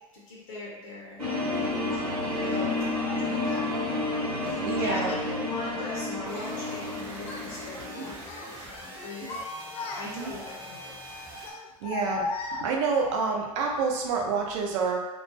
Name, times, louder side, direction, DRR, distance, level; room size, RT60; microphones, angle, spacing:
voice 1, 0.1-2.9 3.2-8.2 8.5-9.4 9.7-10.9, left 2 dB, 60° left, -4 dB, 0.8 m, -41 dB
sound 1, 1.2-8.2, left 2 dB, 85° right, 0.9 m, -30 dB
Child speech kid speaking, 1.9-2.1 3.0-3.7 4.6-5.2 5.7-6.9 7.2-7.5 7.9-8.5 9.0-10.4 11.4-13.1, left 4 dB, 35° left, 0.4 m, -38 dB
voice 2, 4.5-5.1 7.9-8.2 10.0-10.3 11.8-15.0, right 4 dB, 55° right, 0 dB, 0.6 m, -28 dB
sound 2, 6.2-11.5, equal, 15° right, 0.9 m, -43 dB
2.3 x 2.2 x 3.2 m, 1.1 s
figure-of-eight pair, 80°, 18 cm